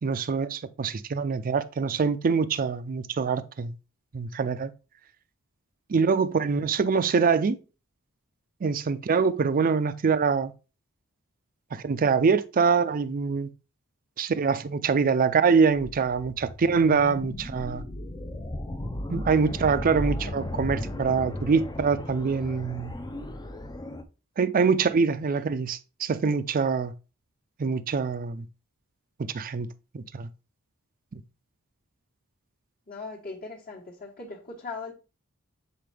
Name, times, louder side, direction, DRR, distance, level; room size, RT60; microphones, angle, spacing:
voice 1, 0.0-3.7 4.1-4.7 5.9-7.6 8.6-10.5 11.7-13.5 14.2-17.8 19.1-22.9 24.4-26.9 27.6-28.5 29.3-29.7 29.9-30.3 31.1-31.2, right 5 dB, 40° right, 0.4 m, -24 dB
sound 1, 15.8-24.0, left 1 dB, 20° left, 0.5 m, -35 dB
voice 2, 32.9-34.9, left 3 dB, 40° left, 1.2 m, -39 dB
7.6 x 4.2 x 3.4 m
head